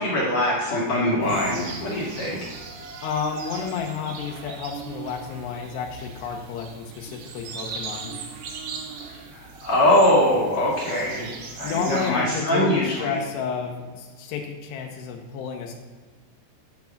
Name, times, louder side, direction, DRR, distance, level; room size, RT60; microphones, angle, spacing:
voice 1, 0.0-2.4 9.4-13.2, left 1 dB, 55° left, -5 dB, 2.2 m, -22 dB
sound 1, 1.2-12.1, right 5 dB, 70° right, 2.3 m, -38 dB
voice 2, 3.0-8.2 11.6-15.7, left 6 dB, 75° left, 1 dB, 2.8 m, -31 dB
9.4 x 4.7 x 7.1 m, 1.4 s
omnidirectional pair, 5.4 m